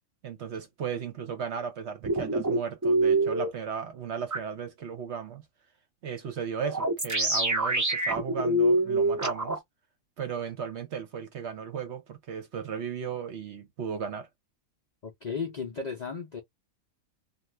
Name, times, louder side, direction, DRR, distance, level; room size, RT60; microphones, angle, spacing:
voice 1, 0.2-5.4 6.0-9.6 10.2-14.3, right 7 dB, 60° right, 0.9 m, -35 dB
sound 1, 2.0-3.5 4.3-4.4 6.6-9.6, right 2 dB, 25° right, 0.4 m, -25 dB
voice 2, 15.0-16.4, left 5 dB, 50° left, 0.5 m, -35 dB
2.6 x 2.4 x 3.2 m
omnidirectional pair, 1.5 m